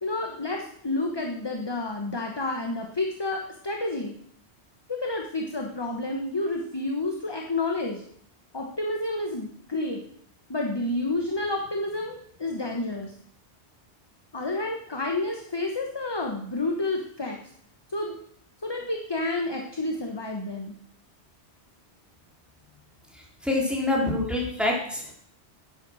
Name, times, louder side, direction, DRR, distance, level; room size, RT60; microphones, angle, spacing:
voice 1, 0.0-4.2 5.0-8.0 8.5-10.0 10.5-13.1 14.3-17.4 17.9-18.2 18.6-20.8, left 2 dB, 25° left, 2 dB, 1.2 m, -30 dB
voice 2, 23.4-25.1, left 2 dB, ahead, -2 dB, 3.2 m, -26 dB
10.0 x 9.6 x 6.3 m, 0.65 s
omnidirectional pair, 1.1 m